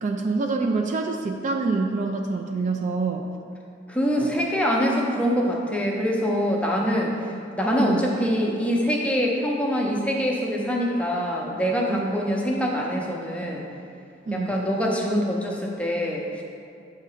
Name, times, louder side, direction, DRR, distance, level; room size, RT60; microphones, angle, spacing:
voice 1, 0.0-3.3 4.2-4.3 7.8-8.1 11.9-12.1 14.3-14.6, right 3 dB, 40° right, 3 dB, 0.3 m, -26 dB
voice 2, 3.9-7.1 7.6-13.6 14.3-16.4, equal, 5° left, -2 dB, 0.6 m, -24 dB
7.2 x 2.8 x 4.9 m, 2.5 s
head